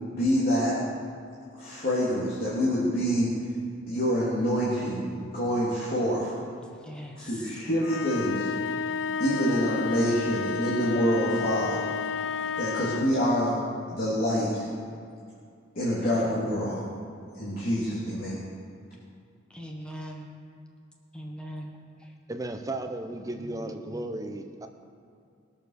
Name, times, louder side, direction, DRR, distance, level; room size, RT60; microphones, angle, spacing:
voice 1, 0.1-0.8 1.6-3.3 3.9-6.3 7.2-8.5 9.2-11.8 12.6-13.6 13.9-14.6 15.7-16.8 17.4-18.4, equal, 50° left, -9 dB, 2.9 m, -26 dB
voice 2, 6.8-7.5 19.5-20.3 21.1-21.7 22.0-22.1, equal, 5° left, -1 dB, 1.4 m, -40 dB
sound 1, 7.8-13.3, left 6 dB, 70° left, 0.4 m, -31 dB
voice 3, 22.3-24.7, right 1 dB, 20° right, 5 dB, 0.8 m, -34 dB
20.5 x 7.2 x 6.6 m, 2.3 s
head